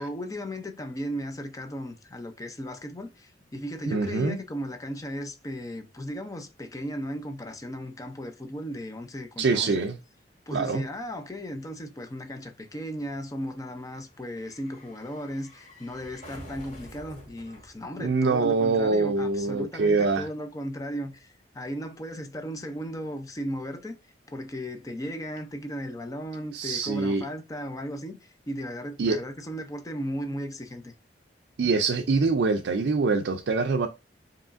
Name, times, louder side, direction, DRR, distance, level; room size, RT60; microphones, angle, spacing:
voice 1, 0.0-9.9 10.5-24.0 24.3-30.9, equal, 20° left, 0.5 m, -36 dB
voice 2, 3.9-4.4 9.4-10.0 10.5-10.8 18.0-20.3 26.5-27.2 29.0-29.2 31.6-33.9, right 4 dB, 70° right, 0.4 m, -24 dB
sound 1, 8.7-19.0 19.2-19.3, equal, 45° left, 2.4 m, -51 dB
4.8 x 3.0 x 2.5 m
head